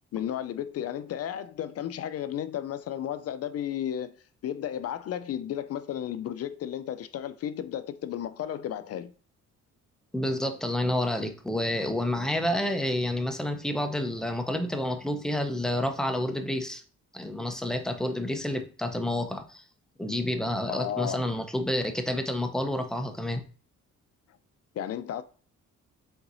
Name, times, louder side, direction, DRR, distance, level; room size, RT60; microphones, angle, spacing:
voice 1, 0.1-4.1 4.4-9.1 20.7-21.3 24.8-25.2, left 10 dB, 55° left, 0.4 m, -33 dB
voice 2, 10.1-16.8 17.1-19.6 20.0-23.4, left 1 dB, ahead, 0.7 m, -29 dB
4.5 x 3.9 x 2.6 m
cardioid pair, 90°, 30 cm